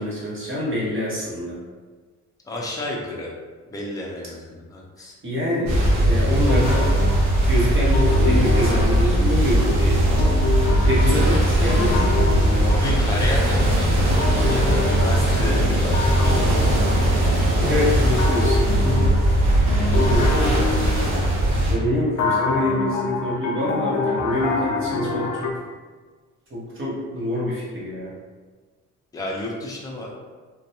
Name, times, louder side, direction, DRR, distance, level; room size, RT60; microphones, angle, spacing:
voice 1, 0.0-1.6 5.2-6.9 7.5-10.1 10.8-12.4 17.6-19.1 19.5-20.6 21.7-25.5 26.5-28.1, left 1 dB, 40° right, -7 dB, 1.1 m, -26 dB
voice 2, 2.4-3.3 3.7-5.1 12.6-16.9 20.0-20.5 29.1-30.1, left 1 dB, 10° left, -3 dB, 0.5 m, -31 dB
sound 1, 5.7-21.8, right 1 dB, 70° right, 1.0 m, -19 dB
sound 2, 6.5-9.6 10.2-13.7 14.2-17.7 18.2-21.7 22.2-25.5, left 4 dB, 65° left, 0.5 m, -28 dB
2.5 x 2.2 x 2.7 m, 1.4 s
cardioid pair, 90°, 30 cm